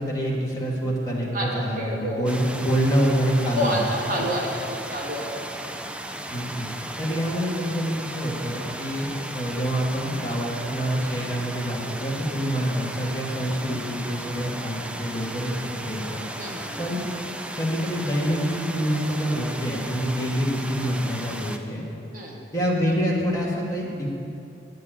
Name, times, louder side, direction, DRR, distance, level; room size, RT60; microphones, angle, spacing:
voice 1, 0.0-3.8 4.2-4.3 6.3-6.7 7.0-16.2 16.8-17.0 17.6-21.8 22.5-24.1, equal, 20° left, -5 dB, 2.3 m, -26 dB
voice 2, 1.3-2.5 3.5-5.6 16.4-16.8 22.1-22.4, equal, 45° right, -2 dB, 2.0 m, -29 dB
sound 1, 2.2-21.6, right 1 dB, 5° right, 0.4 m, -35 dB
9.8 x 7.7 x 9.3 m, 2.6 s
head